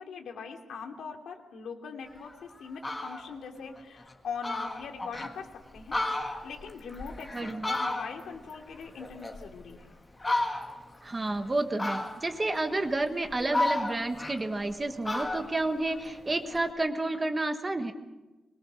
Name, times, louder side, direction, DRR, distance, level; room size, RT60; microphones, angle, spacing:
voice 1, 0.0-5.5 5.7-6.0 6.4-9.9, left 5 dB, 85° left, 2 dB, 3.0 m, -41 dB
Fowl, 2.2-2.3 2.7-3.3 3.8-3.9 4.1-4.2 4.4-5.3 5.8-8.4 8.7-9.8 10.2-10.9 11.8-12.4 13.0-14.7 15.0-16.6, left 2 dB, 15° left, 1.8 m, -33 dB
voice 2, 7.3-7.7 11.0-17.9, right 2 dB, 20° right, 7 dB, 1.4 m, -30 dB
22.5 x 22.0 x 6.4 m, 1.1 s
wide cardioid pair, 160°, 0 cm